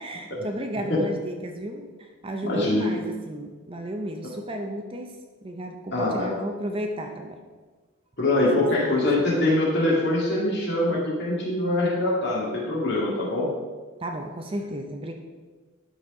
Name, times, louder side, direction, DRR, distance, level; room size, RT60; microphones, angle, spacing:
voice 1, 0.0-5.1 5.4-7.4 8.6-9.3 14.0-15.1, equal, 25° right, 4 dB, 0.5 m, -33 dB
voice 2, 2.5-2.8 5.9-6.3 8.2-13.5, left 1 dB, 50° left, -5 dB, 2.2 m, -23 dB
12.0 x 4.1 x 3.7 m, 1.4 s
head